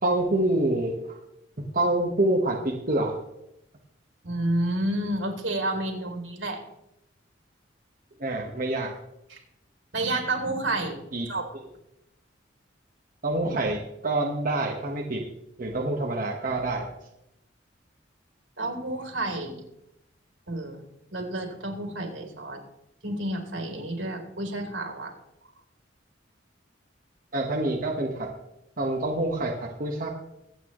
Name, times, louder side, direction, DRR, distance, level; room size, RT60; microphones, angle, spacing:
voice 1, 0.0-1.2 1.6-3.1 8.2-8.9 11.1-11.3 13.2-15.2 15.6-16.9 27.3-28.3 28.8-30.1, right 2 dB, 45° right, -1 dB, 1.4 m, -26 dB
voice 2, 4.2-6.6 9.3-9.4 9.9-11.5 18.6-19.6 20.5-20.8 21.1-22.6 23.0-25.1, right 1 dB, 75° right, 1 dB, 3.5 m, -30 dB
25.0 x 8.8 x 3.1 m, 0.85 s
head